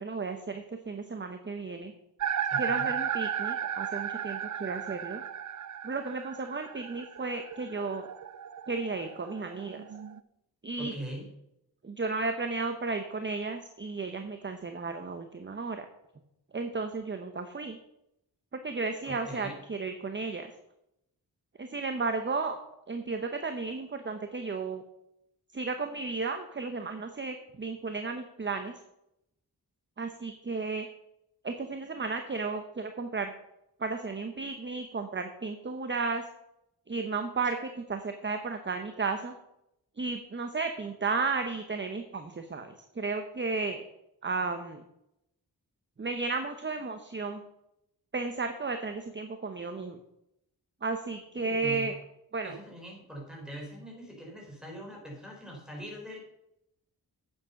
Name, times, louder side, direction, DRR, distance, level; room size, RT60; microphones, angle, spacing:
voice 1, 0.0-1.9 2.6-5.2 5.8-8.1 8.7-9.8 10.6-10.9 11.8-15.9 16.5-17.8 18.5-20.5 21.6-22.6 22.9-24.8 25.5-28.7 30.0-30.9 31.4-33.3 33.8-36.3 36.9-39.3 40.0-43.8 44.2-44.8 46.0-47.4 48.1-50.0 50.8-52.0 52.3-52.5, right 4 dB, 30° right, 7 dB, 0.9 m, -33 dB
sound 1, 2.2-10.2, right 9 dB, 50° right, 0.5 m, -35 dB
voice 2, 2.5-2.9 10.8-11.3 19.0-19.6 51.4-51.9 52.4-56.2, right 1 dB, ahead, -1 dB, 4.6 m, -42 dB
9.1 x 7.5 x 5.9 m, 0.83 s
wide cardioid pair, 85°, 39 cm